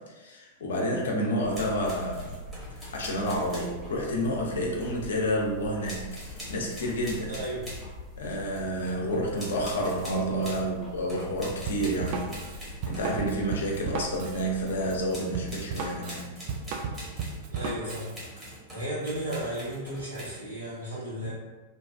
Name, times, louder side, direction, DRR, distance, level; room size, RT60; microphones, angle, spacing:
voice 1, 0.0-2.4 2.7-7.3 8.2-12.3 12.9-16.3, equal, 65° left, -1 dB, 0.5 m, -30 dB
sound 1, 1.4-15.2, left 1 dB, 10° left, 0.7 m, -44 dB
sound 2, 1.5-3.8 4.1-5.2 5.8-7.9 8.2-9.0 9.4-10.7 11.1-13.7 14.1-14.6 15.1-20.4, equal, 10° right, 1.1 m, -44 dB
voice 2, 7.3-7.6 17.5-18.2 18.7-21.3, right 1 dB, 80° right, -8 dB, 1.1 m, -34 dB
Drum kit, 11.7-18.1, right 5 dB, 45° right, 0.3 m, -35 dB
2.6 x 2.3 x 2.3 m, 1.2 s
figure-of-eight pair, 95°, 0 cm